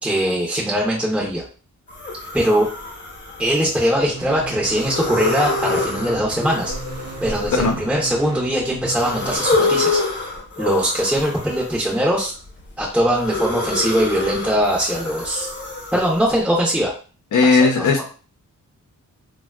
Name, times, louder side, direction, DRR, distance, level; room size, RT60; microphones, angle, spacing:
voice 1, 0.0-1.4 2.3-2.7 3.4-6.7 7.2-10.0 10.6-12.3 12.8-15.5 15.9-16.9 17.6-18.0, equal, 5° right, -3 dB, 0.6 m, -21 dB
sound 1, 1.9-4.1 4.6-8.3 8.8-12.0 12.5-16.3, left 3 dB, 40° left, 0.9 m, -27 dB
sound 2, 4.1-9.4, right 3 dB, 55° right, 0.6 m, -35 dB
voice 2, 17.3-18.0, left 4 dB, 75° left, 2 dB, 0.8 m, -16 dB
3.4 x 2.3 x 2.3 m, 0.37 s
wide cardioid pair, 115°, 31 cm